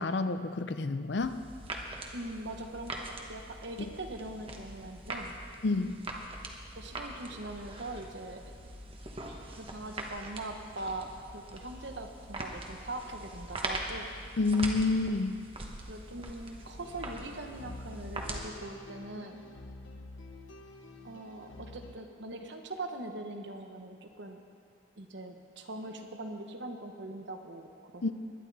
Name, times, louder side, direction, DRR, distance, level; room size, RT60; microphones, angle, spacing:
voice 1, 0.0-1.4 5.6-6.0 14.4-15.3 28.0-28.1, left 3 dB, 60° left, 10 dB, 0.5 m, -29 dB
sound 1, 1.2-18.4, right 2 dB, 30° right, 1.1 m, -42 dB
voice 2, 2.1-5.3 6.8-8.6 9.5-14.1 15.9-19.4 21.0-24.4 25.0-28.1, right 2 dB, 65° right, 5 dB, 1.1 m, -42 dB
sound 2, 16.8-21.9, left 2 dB, 85° left, 1.2 m, -48 dB
20.5 x 11.0 x 4.1 m, 2.3 s
head